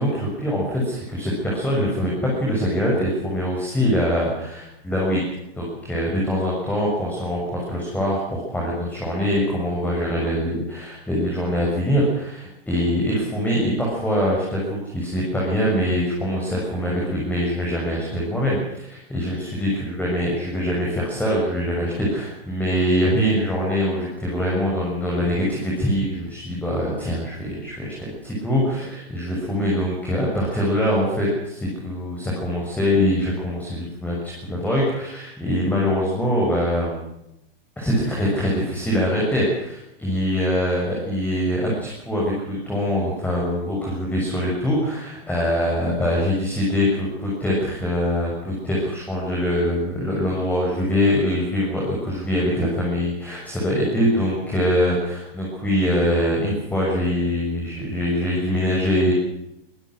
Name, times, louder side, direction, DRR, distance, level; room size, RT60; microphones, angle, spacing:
voice 1, 0.0-5.2 5.5-37.0 37.8-59.1, equal, 5° left, -4 dB, 6.9 m, -23 dB
23.5 x 18.5 x 6.4 m, 0.83 s
supercardioid pair, 150°, 31 cm